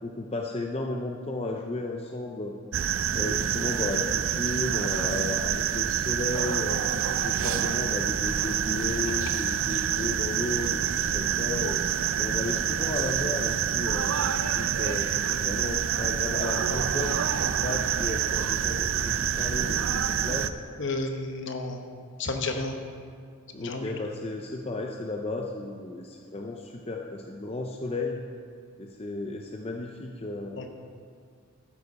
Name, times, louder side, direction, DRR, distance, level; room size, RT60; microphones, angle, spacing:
voice 1, 0.0-2.6 3.1-6.9 7.2-10.8 11.1-14.1 14.5-20.5 23.5-28.2 28.8-30.6, left 2 dB, 25° left, 1 dB, 0.5 m, -34 dB
sound 1, 2.7-20.5, right 8 dB, 65° right, 0.4 m, -27 dB
voice 2, 20.8-21.8 22.2-22.7 23.6-23.9 30.6-30.7, left 2 dB, 55° left, 5 dB, 1.0 m, -31 dB
12.5 x 10.0 x 4.1 m, 2.1 s
head